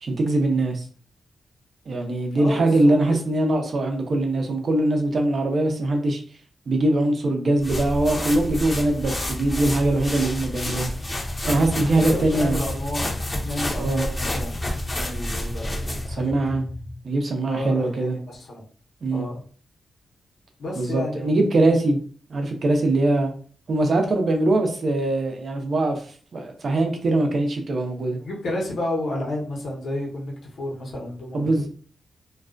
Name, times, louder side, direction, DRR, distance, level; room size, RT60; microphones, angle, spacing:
voice 1, 0.0-0.9 1.9-6.2 6.7-10.9 11.5-12.6 13.8-14.1 16.1-16.6 17.0-18.2 19.0-19.3 20.8-22.0 22.3-23.3 23.7-28.2 31.3-31.7, right 2 dB, 60° right, 4 dB, 0.6 m, -22 dB
voice 2, 2.4-3.2 11.8-13.1 13.4-14.6 14.9-16.5 17.5-18.6 19.1-19.4 20.6-21.4 28.2-31.5, left 1 dB, 75° left, -2 dB, 0.9 m, -31 dB
sound 1, 7.6-16.2, left 1 dB, 30° left, 0.6 m, -29 dB
sound 2, 11.0-17.0, left 1 dB, 15° right, 0.7 m, -37 dB
2.3 x 2.2 x 2.4 m, 0.44 s
cardioid pair, 75°, 0 cm